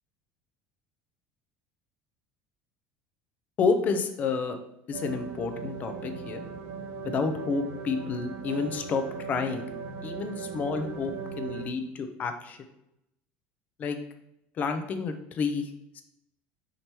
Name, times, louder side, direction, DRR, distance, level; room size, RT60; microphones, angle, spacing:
voice 1, 3.6-4.6 4.9-6.4 7.0-9.7 10.0-12.6 13.8-14.0 14.6-16.0, left 5 dB, 35° left, 7 dB, 0.7 m, -30 dB
sound 1, 4.9-11.7, right 5 dB, 55° right, 1.4 m, -38 dB
5.1 x 4.4 x 4.5 m, 0.82 s
cardioid pair, 155°, 5 cm